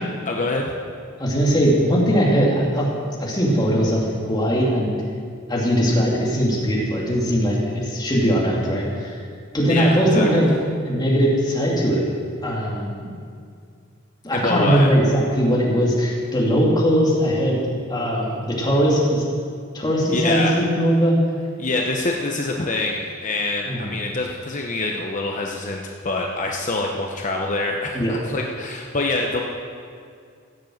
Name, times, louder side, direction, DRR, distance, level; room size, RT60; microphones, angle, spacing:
voice 1, 0.2-0.7 9.7-10.3 14.3-14.9 20.1-20.6 21.6-29.4, left 2 dB, 40° left, 0 dB, 0.9 m, -25 dB
voice 2, 1.2-2.9 3.2-5.0 5.5-9.2 9.5-10.5 10.8-12.0 12.4-13.1 14.2-17.6 17.9-19.2 19.7-21.2 23.7-23.9 27.9-28.2, equal, 20° left, -4 dB, 2.7 m, -20 dB
16.0 x 7.4 x 7.8 m, 2.2 s
head